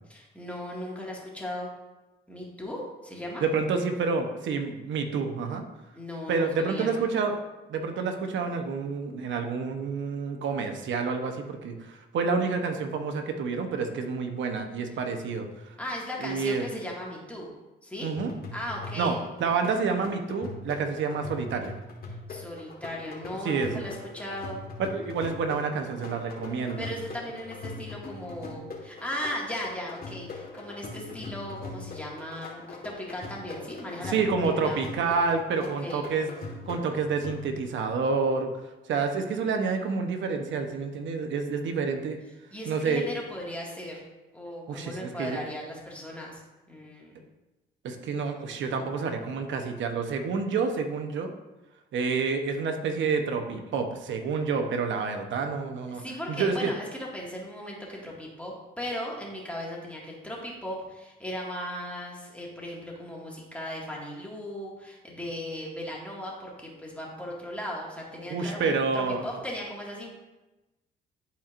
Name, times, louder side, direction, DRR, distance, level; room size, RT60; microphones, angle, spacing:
voice 1, 0.1-1.7 2.3-3.4 5.9-6.9 15.8-17.5 17.8-18.1 18.5-19.2 22.3-24.6 26.8-34.8 35.6-36.0 42.5-44.0 44.3-46.4 46.7-47.1 55.9-70.1, left 1 dB, 5° left, -3 dB, 2.0 m, -37 dB
voice 2, 3.4-5.6 6.3-7.4 7.7-15.5 16.2-16.6 18.0-18.3 19.0-19.1 19.4-21.7 23.4-23.9 24.9-26.9 34.1-36.3 36.7-38.5 38.9-42.2 42.7-43.1 44.7-45.4 47.8-51.3 51.9-56.0 56.3-56.7 68.3-69.2, right 5 dB, 70° right, 5 dB, 0.9 m, -28 dB
sound 1, 18.2-37.8, left 3 dB, 50° left, 1.5 m, -41 dB
11.5 x 4.5 x 2.5 m, 1.1 s
cardioid pair, 90°, 20 cm